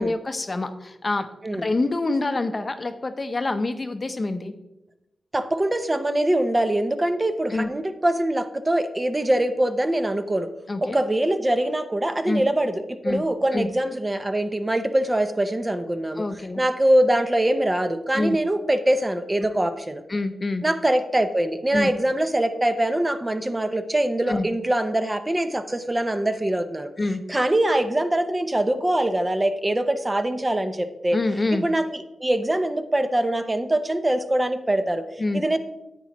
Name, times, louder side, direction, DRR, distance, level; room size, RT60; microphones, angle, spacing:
voice 1, 0.0-4.5 7.5-7.7 10.7-11.0 12.3-12.4 13.0-13.2 13.5-13.7 16.2-16.6 18.1-18.4 20.1-20.6 21.7-21.9 24.3-24.5 27.0-27.2 31.1-31.6 35.2-35.4, left 2 dB, 35° left, 9 dB, 0.7 m, -26 dB
voice 2, 5.3-10.5 10.8-16.2 16.6-20.0 20.6-26.9 27.3-31.2 31.6-31.8 32.2-35.0 35.3-35.6, right 1 dB, 20° right, 9 dB, 0.7 m, -23 dB
9.9 x 8.4 x 3.0 m, 0.92 s
wide cardioid pair, 85°, 0 cm